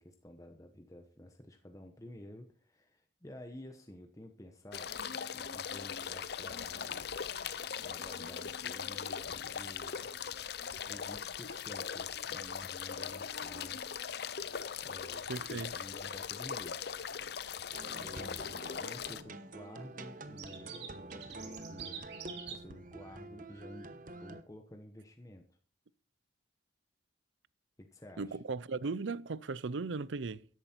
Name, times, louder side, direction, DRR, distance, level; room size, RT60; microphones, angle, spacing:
voice 1, 0.0-7.0 7.8-10.1 10.9-13.8 14.8-15.2 15.5-16.9 17.8-18.3 18.8-22.1 22.5-25.4 27.8-28.4, left 1 dB, 15° left, 1.1 m, -51 dB
sound 1, 4.7-19.2, left 7 dB, 60° left, 0.6 m, -40 dB
voice 2, 15.3-15.8 28.2-30.5, right 4 dB, 80° right, 0.6 m, -37 dB
sound 2, 15.7-16.5 16.7-16.8 17.0-17.2 17.6-17.7 17.9-18.6 18.8-19.6 20.1-20.2 20.4-22.5, right 8 dB, 65° right, 3.2 m, -48 dB
sound 3, 17.7-24.4, right 2 dB, 45° right, 1.1 m, -47 dB
13.5 x 11.0 x 4.5 m
head